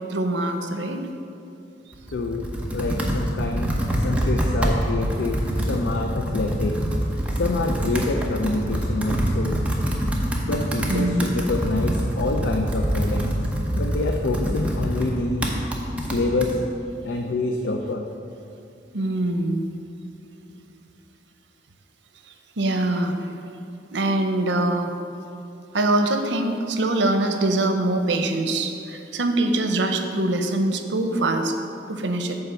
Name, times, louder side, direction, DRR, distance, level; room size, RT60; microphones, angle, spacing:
voice 1, 0.1-1.0 10.9-11.4 18.9-19.6 22.6-23.2 23.9-24.9 25.7-28.7 29.1-31.5 31.9-32.4, right 2 dB, 85° right, 6 dB, 0.7 m, -23 dB
Computer keyboard, 1.9-16.5, equal, 5° right, 0.8 m, -25 dB
voice 2, 2.1-2.5 2.7-6.8 7.3-9.6 10.5-13.3 13.8-15.5 16.0-16.6 17.0-18.0, left 2 dB, 75° left, 3 dB, 0.5 m, -27 dB
9.3 x 3.5 x 6.7 m, 2.6 s
head